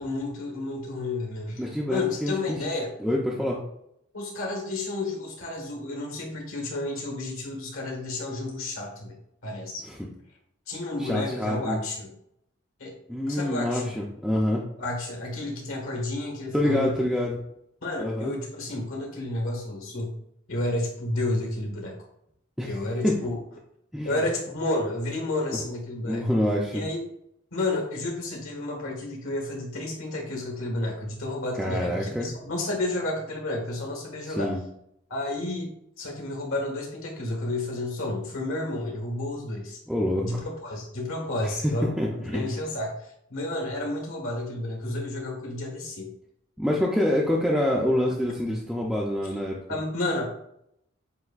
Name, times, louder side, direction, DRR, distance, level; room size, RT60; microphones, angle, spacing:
voice 1, 0.0-2.9 4.1-9.2 9.4-9.8 10.7-12.1 12.8-12.9 13.3-13.9 14.8-17.0 17.8-20.2 20.5-21.9 22.7-23.4 24.0-26.2 26.7-27.0 27.5-34.5 35.1-35.7 36.0-39.8 40.2-42.0 42.3-46.1 49.7-50.3, left 2 dB, 75° left, 0 dB, 1.5 m, -31 dB
voice 2, 1.6-2.7 3.0-3.6 9.8-10.0 11.0-11.8 13.1-14.6 16.5-17.4 18.0-18.4 22.6-22.8 23.0-23.2 23.9-24.2 25.5-25.6 26.0-26.8 31.6-32.3 34.2-34.6 39.9-40.3 41.6-41.7 42.0-42.6 46.6-49.6, left 1 dB, ahead, -4 dB, 0.4 m, -26 dB
7.6 x 2.6 x 2.4 m, 0.75 s
head